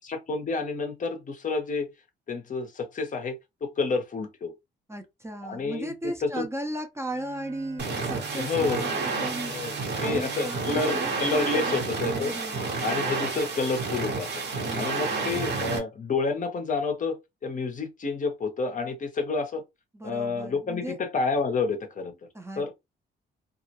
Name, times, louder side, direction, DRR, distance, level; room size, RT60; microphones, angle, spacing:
voice 1, 0.0-1.9 2.3-4.5 5.4-6.5 8.4-8.9 9.4-9.7 10.0-12.3 12.8-14.4 14.8-19.6 20.0-22.1 22.6-22.7, left 4 dB, 40° left, 0.7 m, -29 dB
voice 2, 4.9-9.5 9.9-13.1 14.6-15.4 19.9-21.0 22.3-22.7, right 1 dB, 15° right, 0.6 m, -36 dB
Bowed string instrument, 7.0-12.2, right 6 dB, 85° right, 0.5 m, -46 dB
sound 1, 7.8-15.8, right 4 dB, 60° right, 1.0 m, -30 dB
2.3 x 2.1 x 2.8 m
cardioid pair, 90°, 20 cm